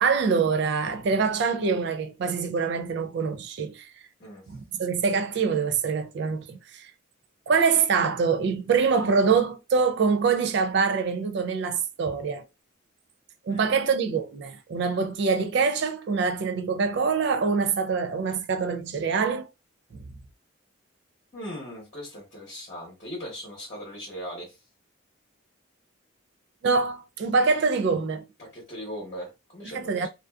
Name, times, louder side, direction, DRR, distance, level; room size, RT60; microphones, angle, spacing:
voice 1, 0.0-3.8 4.5-6.9 7.5-12.4 13.5-19.5 26.6-28.2 29.7-30.1, right 5 dB, 55° right, 0.3 m, -24 dB
voice 2, 21.3-24.5 28.4-30.1, equal, 35° left, 0.9 m, -39 dB
2.4 x 2.2 x 2.2 m
head